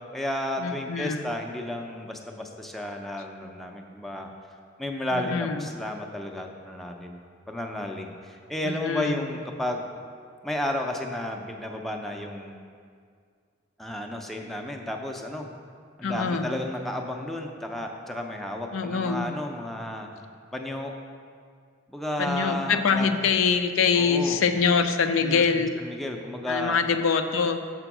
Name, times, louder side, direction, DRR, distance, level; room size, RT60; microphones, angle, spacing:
voice 1, 0.0-4.3 4.8-7.2 7.5-9.9 10.4-12.6 13.8-15.5 16.0-20.1 20.5-20.9 21.9-23.1 24.0-24.4 25.2-26.8, left 1 dB, ahead, 1 dB, 0.4 m, -32 dB
voice 2, 0.6-1.3 5.1-5.7 8.6-9.3 16.0-16.5 18.7-19.3 22.2-25.7 26.5-27.6, left 5 dB, 90° left, 8 dB, 0.4 m, -24 dB
6.8 x 4.4 x 5.9 m, 2.1 s
head